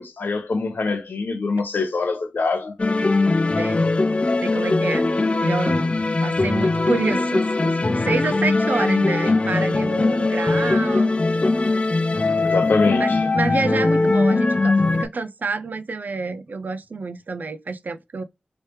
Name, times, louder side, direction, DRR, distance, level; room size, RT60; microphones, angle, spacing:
voice 1, 0.0-2.7 12.4-13.2, left 4 dB, 85° left, 0.7 m, -24 dB
sound 1, 2.8-15.1, left 3 dB, 40° left, 0.4 m, -20 dB
voice 2, 3.6-3.9 4.4-5.1 5.4-5.9 6.2-11.1 13.0-18.2, right 4 dB, 65° right, 0.4 m, -28 dB
3.1 x 3.1 x 3.0 m
wide cardioid pair, 55°, 3 cm